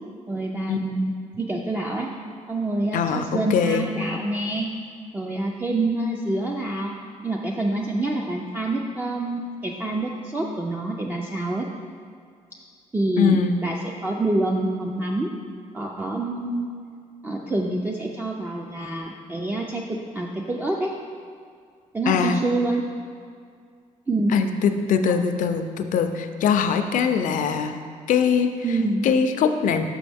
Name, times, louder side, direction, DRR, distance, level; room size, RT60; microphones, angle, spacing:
voice 1, 0.3-2.1 2.5-4.7 5.1-7.0 7.2-11.7 12.9-13.8 14.0-15.3 15.7-16.7 17.2-20.9 21.9-22.9 24.1-24.4 25.1-25.2 28.6-29.1, right 2 dB, 15° right, -1 dB, 0.4 m, -26 dB
voice 2, 2.9-3.9 13.2-13.6 22.1-22.4 24.3-27.8 28.1-28.5 29.0-29.9, left 6 dB, 75° left, 8 dB, 0.5 m, -22 dB
6.2 x 6.1 x 3.4 m, 2.2 s
cardioid pair, 130°, 14 cm